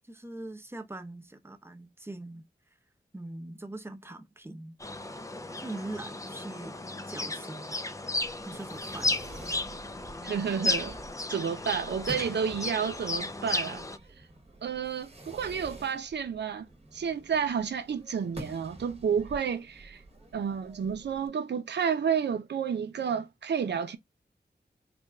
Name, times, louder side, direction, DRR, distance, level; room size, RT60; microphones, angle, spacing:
voice 1, 0.0-2.5 3.1-4.8 5.6-6.8 7.1-7.8 8.5-9.2, right 2 dB, 15° right, 0.7 m, -42 dB
sound 1, 4.8-14.0, left 2 dB, 20° left, 0.4 m, -34 dB
Fireworks, 8.2-21.3, right 1 dB, 35° right, 1.0 m, -48 dB
voice 2, 10.2-11.0 11.3-13.8 14.6-16.7 16.9-20.0 20.3-24.0, right 7 dB, 90° right, 0.5 m, -30 dB
4.2 x 2.2 x 3.5 m
wide cardioid pair, 100°, 17 cm